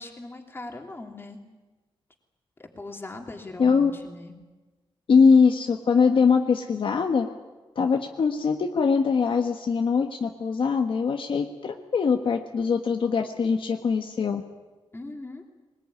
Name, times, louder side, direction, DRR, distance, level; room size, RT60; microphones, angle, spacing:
voice 1, 0.0-1.4 2.6-4.3 14.9-15.4, left 2 dB, 25° left, 2 dB, 3.1 m, -40 dB
voice 2, 3.6-3.9 5.1-7.3 7.7-14.4, left 5 dB, 65° left, 4 dB, 1.4 m, -22 dB
21.5 x 20.5 x 9.7 m, 1.2 s
wide cardioid pair, 135°, 10 cm